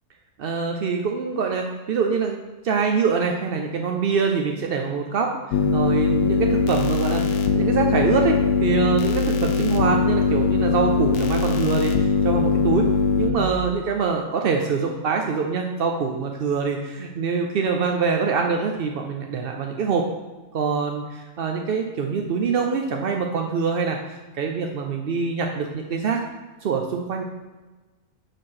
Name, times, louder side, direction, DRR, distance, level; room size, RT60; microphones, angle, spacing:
voice 1, 0.4-2.4 2.6-12.9 13.2-20.1 20.5-26.2 26.6-27.2, right 5 dB, 60° right, 2 dB, 0.6 m, -24 dB
sound 1, 5.5-13.3, left 5 dB, 80° left, 1.1 m, -21 dB
6.0 x 5.1 x 5.7 m, 1.2 s
omnidirectional pair, 1.5 m